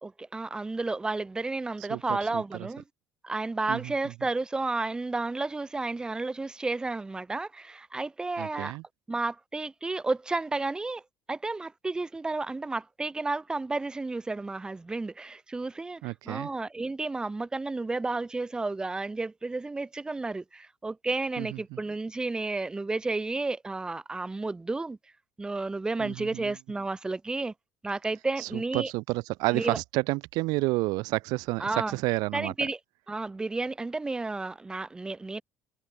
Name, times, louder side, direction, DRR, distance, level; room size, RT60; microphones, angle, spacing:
voice 1, 0.0-2.8 3.2-8.8 9.1-11.0 11.3-25.0 25.4-27.5 27.8-28.9 29.5-29.8 31.6-32.0 32.3-32.8 33.1-35.4, right 3 dB, 10° right, 2.1 m, -32 dB
voice 2, 2.3-2.7 3.7-3.9 8.4-8.8 16.0-16.5 21.4-21.8 26.0-26.5 28.4-32.7, right 23 dB, 75° right, 1.7 m, -30 dB
cardioid pair, 140°, 7 cm